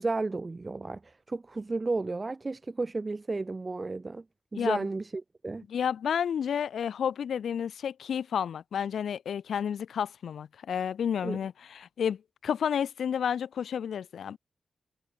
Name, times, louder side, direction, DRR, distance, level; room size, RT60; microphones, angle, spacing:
voice 1, 0.0-4.2 4.5-5.6 11.2-11.4, right 3 dB, 30° right, 1.7 m, -33 dB
voice 2, 5.7-14.4, left 8 dB, 85° left, 1.3 m, -31 dB
wide cardioid pair, 110°, 0 cm